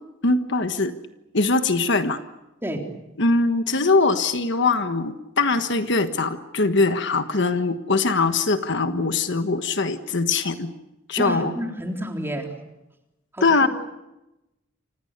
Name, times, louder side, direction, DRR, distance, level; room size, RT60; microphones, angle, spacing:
voice 1, 0.2-0.9 1.3-2.2 3.2-10.7 11.1-11.5 13.4-13.7, left 3 dB, 60° left, 8 dB, 1.4 m, -22 dB
voice 2, 11.2-12.5 13.3-13.7, equal, 10° right, 2 dB, 3.8 m, -30 dB
29.5 x 26.0 x 6.8 m, 0.94 s
head